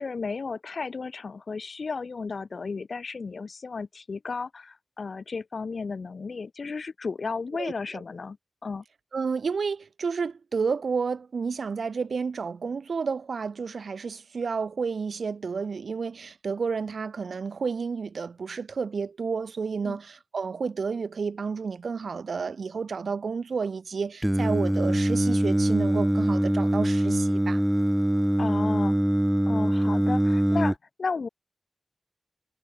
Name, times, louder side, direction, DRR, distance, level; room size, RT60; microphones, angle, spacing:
voice 1, 0.0-8.4 8.6-8.8 19.8-20.0 28.4-29.0 29.5-31.3, left 4 dB, 70° left, 1.5 m, -34 dB
voice 2, 9.1-27.6, right 5 dB, 85° right, 2.4 m, -31 dB
Singing, 24.2-30.7, right 1 dB, 10° right, 0.6 m, -23 dB
wide cardioid pair, 100°, 0 cm